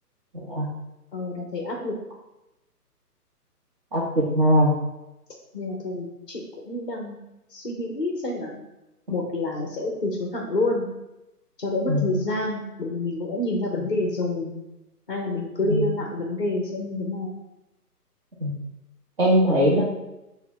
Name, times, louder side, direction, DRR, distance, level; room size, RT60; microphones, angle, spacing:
voice 1, 0.3-0.7 3.9-4.7 11.9-12.1 15.6-15.8 18.4-18.6 19.2-19.8, equal, 35° right, -7 dB, 0.8 m, -21 dB
voice 2, 1.1-2.0 5.5-7.2 7.5-8.6 9.1-10.9 11.6-14.5 15.1-17.3, left 2 dB, 35° left, -1 dB, 0.5 m, -28 dB
5.5 x 2.1 x 3.9 m, 0.96 s
figure-of-eight pair, 145°, 48 cm